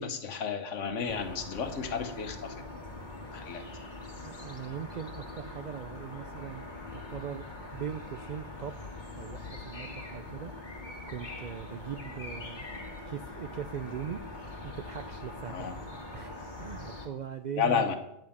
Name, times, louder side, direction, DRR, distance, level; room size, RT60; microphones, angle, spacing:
voice 1, 0.0-2.5 3.3-3.6 15.5-15.7 17.6-18.0, left 6 dB, 70° left, 7 dB, 1.3 m, -31 dB
sound 1, 1.1-17.1, left 2 dB, 40° left, 1.7 m, -43 dB
voice 2, 4.2-6.7 6.9-7.4 7.7-12.7 13.1-14.2 14.6-15.9 16.1-17.9, right 8 dB, 70° right, 9 dB, 0.4 m, -40 dB
10.5 x 5.1 x 7.2 m, 0.82 s
omnidirectional pair, 1.3 m